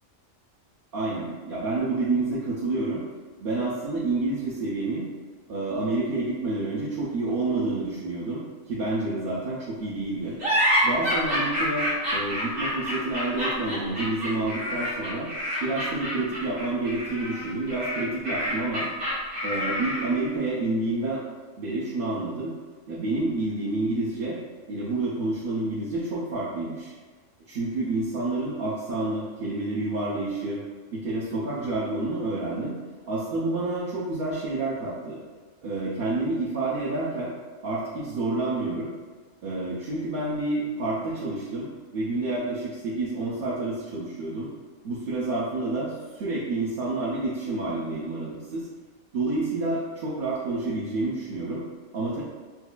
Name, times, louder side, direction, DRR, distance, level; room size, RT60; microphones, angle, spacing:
voice 1, 0.9-3.0 3.4-5.1 5.5-10.4 10.8-15.3 15.6-18.9 19.4-21.2 21.6-22.5 22.9-24.4 24.7-26.9 27.5-30.6 30.9-32.7 33.1-35.2 35.6-37.3 37.6-38.9 39.4-41.7 41.9-44.5 44.8-48.7 49.1-51.6 51.9-52.2, right 2 dB, 60° right, -7 dB, 0.6 m, -29 dB
sound 1, 10.4-20.2, equal, 75° right, 1.6 m, -27 dB
4.4 x 2.4 x 2.2 m, 1.4 s
omnidirectional pair, 1.4 m